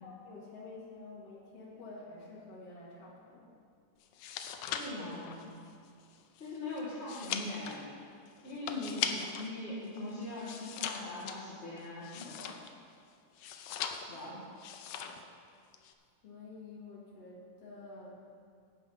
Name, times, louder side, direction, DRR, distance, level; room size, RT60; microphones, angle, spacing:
voice 1, 0.0-3.5 14.3-14.5 15.0-15.2 16.2-18.2, left 3 dB, 55° left, -5 dB, 2.9 m, -49 dB
sound 1, 4.0-9.5 9.8-12.9 13.4-14.3 14.6-15.3 15.5-15.9, left 8 dB, 80° left, 1.3 m, -40 dB
voice 2, 4.7-5.6 6.4-7.9 8.4-12.6 14.0-14.4, left 2 dB, 25° left, -11 dB, 1.9 m, -41 dB
11.0 x 7.9 x 5.6 m, 2.2 s
omnidirectional pair, 3.3 m